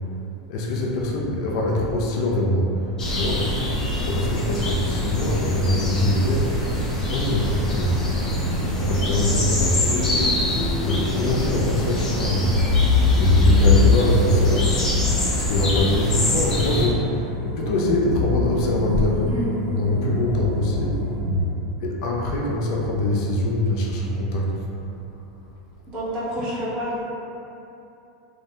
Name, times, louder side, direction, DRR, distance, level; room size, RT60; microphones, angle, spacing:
voice 1, 0.5-2.8 3.1-3.5 4.1-6.5 7.0-8.1 8.7-10.3 10.8-12.6 13.2-14.8 15.4-19.3 19.7-21.0 21.8-24.5, left 1 dB, 60° left, -2 dB, 0.4 m, -23 dB
sound 1, 3.0-16.9, left 1 dB, 15° left, 0.6 m, -25 dB
sound 2, 7.8-21.4, left 3 dB, 80° right, 1.3 m, -24 dB
voice 2, 19.2-19.6 25.9-27.0, right 1 dB, 30° right, -8 dB, 0.7 m, -28 dB
2.3 x 2.1 x 2.7 m, 2.8 s
supercardioid pair, 145°, 3 cm